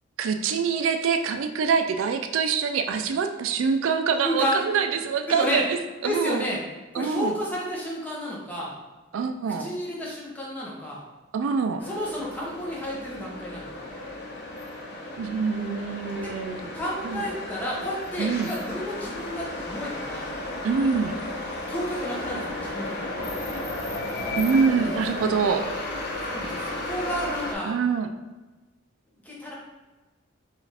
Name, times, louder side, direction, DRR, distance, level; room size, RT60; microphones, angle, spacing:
voice 1, 0.2-6.5 6.9-7.3 9.1-9.7 11.3-11.8 15.2-16.7 17.0-17.2 18.2-18.5 20.6-21.2 24.4-25.6 27.7-28.1, right 5 dB, 80° right, 6 dB, 0.3 m, -25 dB
voice 2, 4.2-4.6 5.3-5.6 6.0-6.6 6.9-8.7 9.6-11.0 11.8-13.7 16.2-16.3 16.7-20.3 21.7-23.2 26.3-27.7 29.2-29.5, equal, 10° left, -5 dB, 0.8 m, -31 dB
sound 1, 11.8-27.5, left 2 dB, 50° left, 0.8 m, -34 dB
4.8 x 2.4 x 3.3 m, 1.2 s
head